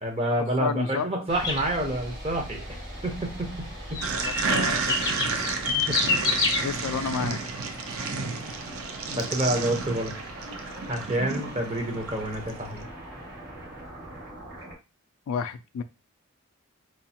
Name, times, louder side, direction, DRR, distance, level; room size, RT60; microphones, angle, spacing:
voice 1, 0.0-2.6 3.0-4.0 5.7-5.9 9.1-10.1 10.9-12.9, right 1 dB, 25° right, 2 dB, 0.8 m, -28 dB
voice 2, 0.6-1.1 4.1-5.1 6.6-7.4 15.3-15.8, left 6 dB, 75° left, 9 dB, 0.3 m, -30 dB
sound 1, 1.3-14.8, right 1 dB, 50° right, 2.1 m, -41 dB
sound 2, 1.4-1.6 3.9-6.6, left 3 dB, 15° left, 0.6 m, -26 dB
sound 3, 4.0-12.6, right 4 dB, 70° right, 0.5 m, -31 dB
4.5 x 2.5 x 2.7 m, 0.28 s
head